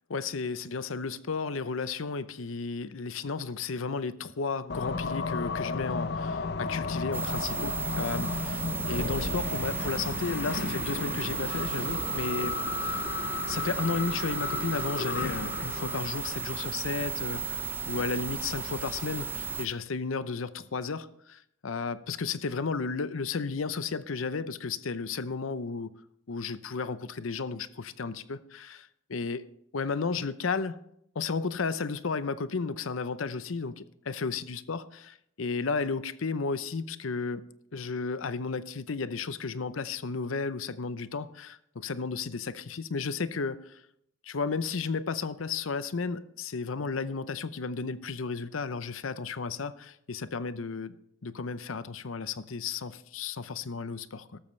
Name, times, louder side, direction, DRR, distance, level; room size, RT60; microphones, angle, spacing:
voice 1, 0.1-13.1 13.5-25.9 26.3-29.5 29.7-30.8 31.1-37.4 37.7-43.8 44.2-51.0 51.2-54.4, left 4 dB, 90° left, 0.7 m, -33 dB
sound 1, 4.7-16.7, left 4 dB, 55° left, 0.6 m, -34 dB
sound 2, 7.1-19.7, right 5 dB, 10° right, 0.5 m, -35 dB
14.0 x 13.0 x 3.3 m
head